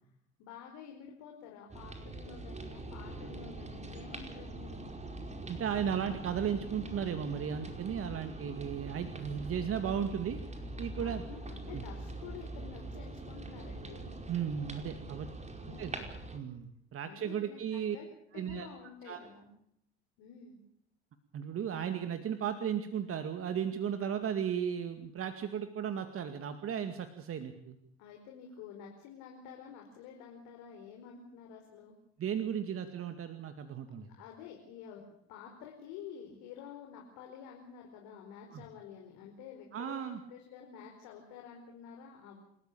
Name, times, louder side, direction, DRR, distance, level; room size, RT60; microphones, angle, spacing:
voice 1, 0.4-4.8 10.9-14.1 15.6-16.1 17.1-18.1 18.3-19.5 20.2-20.6 28.0-32.0 34.2-35.0 35.3-42.4, left 7 dB, 65° left, 1 dB, 5.0 m, -50 dB
sound 1, 1.7-16.4, right 2 dB, 20° right, 5.0 m, -43 dB
voice 2, 5.5-10.4 10.8-11.2 11.7-11.8 14.3-15.3 15.8-15.9 16.3-18.0 18.3-18.7 19.0-19.2 21.3-27.8 32.2-34.1 38.5-38.6 39.7-40.2, right 8 dB, 40° right, 8 dB, 2.2 m, -35 dB
29.0 x 14.0 x 8.6 m, 0.73 s
hypercardioid pair, 70°, 33 cm